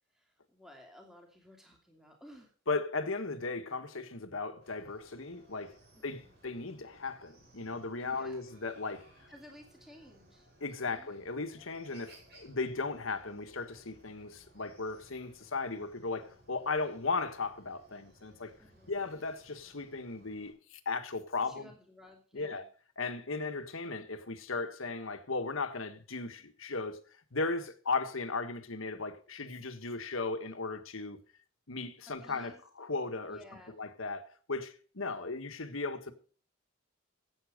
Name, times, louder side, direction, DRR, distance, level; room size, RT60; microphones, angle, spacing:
voice 1, 0.1-2.5 5.9-6.3 8.0-8.4 9.3-10.5 10.8-11.1 18.6-19.0 21.4-22.6 32.1-32.6 33.3-33.8, left 1 dB, ahead, 2.8 m, -55 dB
voice 2, 2.7-5.8 6.0-9.1 10.6-18.5 18.9-21.7 22.3-22.7 23.0-27.0 27.3-31.2 31.7-33.4 33.8-36.1, left 3 dB, 85° left, 1.6 m, -36 dB
Chicken rooster, 4.6-20.5, right 1 dB, 50° right, 5.4 m, -61 dB
16.0 x 8.7 x 5.1 m
head